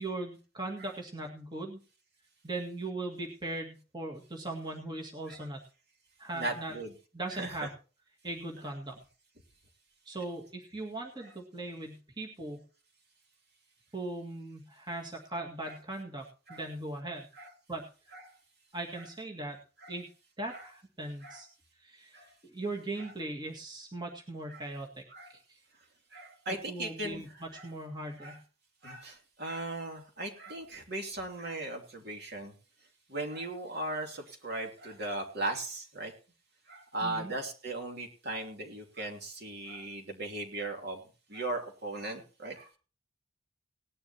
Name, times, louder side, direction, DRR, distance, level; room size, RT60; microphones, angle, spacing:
voice 1, 0.0-1.8 2.4-5.6 6.2-6.7 7.1-7.7 8.2-9.0 10.1-12.6 13.9-17.3 17.7-17.9 18.7-19.6 19.9-20.1 20.4-21.5 21.8-24.9 25.3-25.6 26.7-28.4 37.0-37.3, right 2 dB, 20° right, 0 dB, 2.0 m, -39 dB
voice 2, 6.3-6.9 7.3-7.5 15.7-15.8 16.5-16.6 17.4-17.5 18.1-18.2 19.8-19.9 20.5-20.7 21.2-21.4 22.1-22.3 24.5-24.6 25.1-25.3 26.1-27.2 27.5-27.7 28.2-28.4 28.8-32.5 33.1-36.1 36.7-41.0 41.3-42.7, right 2 dB, 50° right, 2 dB, 3.0 m, -38 dB
19.0 x 11.5 x 3.0 m, 0.35 s
head